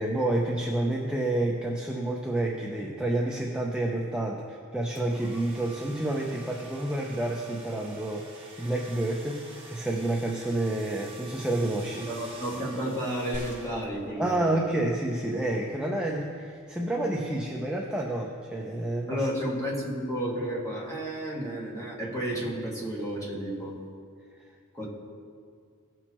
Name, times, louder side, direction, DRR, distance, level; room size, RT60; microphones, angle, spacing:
voice 1, 0.0-8.3 8.6-9.4 9.7-12.1 14.2-19.3, right 1 dB, 5° right, -1 dB, 0.5 m, -29 dB
sound 1, 4.9-14.1, right 2 dB, 25° right, 1.5 m, -47 dB
voice 2, 12.1-14.6 19.1-23.8 24.7-24.9, equal, 15° left, -5 dB, 1.8 m, -32 dB
sound 2, 13.3-14.8 15.6-15.7, equal, 30° left, 1.0 m, -44 dB
17.0 x 6.2 x 3.0 m, 2.2 s
head